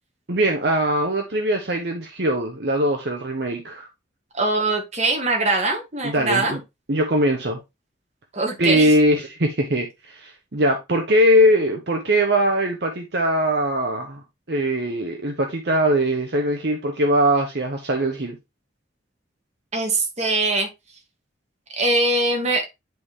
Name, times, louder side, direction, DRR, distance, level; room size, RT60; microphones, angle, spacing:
voice 1, 0.3-3.9 6.0-6.6 6.9-7.6 8.6-14.2 14.5-18.4, equal, 60° right, 1.0 m, -21 dB
voice 2, 4.3-6.6 8.3-8.9 19.7-20.7 21.8-22.7, right 2 dB, 35° right, 1.9 m, -22 dB
10.5 x 3.7 x 3.1 m
head